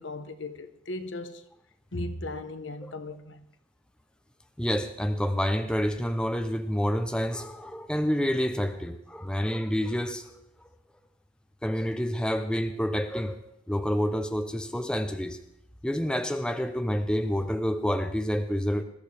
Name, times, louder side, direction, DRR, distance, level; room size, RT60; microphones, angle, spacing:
voice 1, 0.0-1.4 1.9-3.4, left 2 dB, 65° left, 1.1 m, -37 dB
voice 2, 4.6-10.4 11.6-13.4 13.7-15.4 15.8-18.8, equal, 5° left, 0.6 m, -28 dB
21.0 x 14.0 x 3.4 m
head